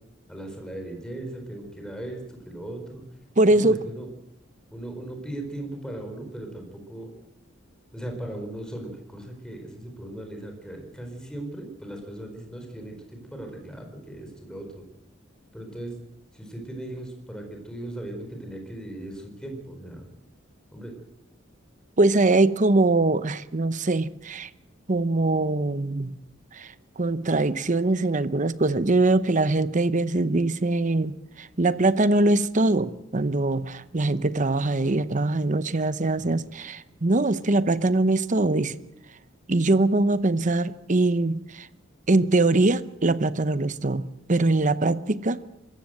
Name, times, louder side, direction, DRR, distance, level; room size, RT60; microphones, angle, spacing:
voice 1, 0.3-3.0 3.6-4.1 4.7-7.1 7.9-14.8 15.5-15.9 16.3-20.1 20.7-20.9 36.2-36.4, right 1 dB, 5° left, 4.6 m, -38 dB
voice 2, 3.4-3.8 22.0-24.5 24.9-26.1 26.5-38.8 39.5-41.7 42.1-45.4, right 2 dB, 40° right, 0.9 m, -22 dB
25.0 x 15.0 x 7.9 m
head